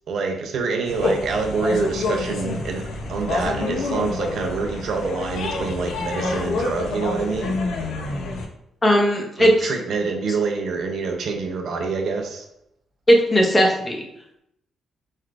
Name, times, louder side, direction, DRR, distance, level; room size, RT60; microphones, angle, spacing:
voice 1, 0.1-2.8 3.1-7.6 9.4-12.5, right 4 dB, 55° right, 3 dB, 0.5 m, -26 dB
sound 1, 0.9-8.5, left 3 dB, 80° left, 0.6 m, -27 dB
voice 2, 8.8-9.7 13.1-14.0, equal, 20° left, 1 dB, 0.6 m, -17 dB
4.3 x 3.2 x 2.5 m, 0.80 s
cardioid pair, 160°, 0 cm